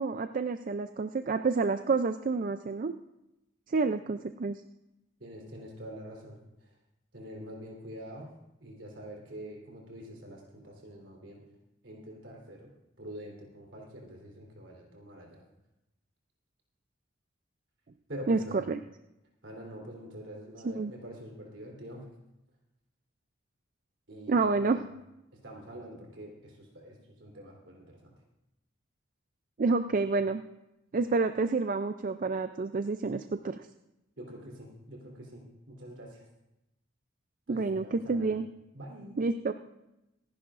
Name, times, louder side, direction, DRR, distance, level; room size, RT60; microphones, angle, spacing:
voice 1, 0.0-2.9 3.7-4.6 18.3-18.8 20.6-20.9 24.3-24.8 29.6-30.4 30.9-33.7 37.5-38.5 39.2-39.5, right 4 dB, 40° right, 9 dB, 0.4 m, -29 dB
voice 2, 5.2-6.7 7.1-8.3 8.6-11.4 11.8-12.7 13.0-15.4 18.1-18.6 19.4-22.1 24.1-24.9 25.3-28.1 34.2-36.2 37.5-38.4 38.7-39.5, equal, 65° right, 0 dB, 3.6 m, -45 dB
26.0 x 11.0 x 2.5 m, 0.92 s
head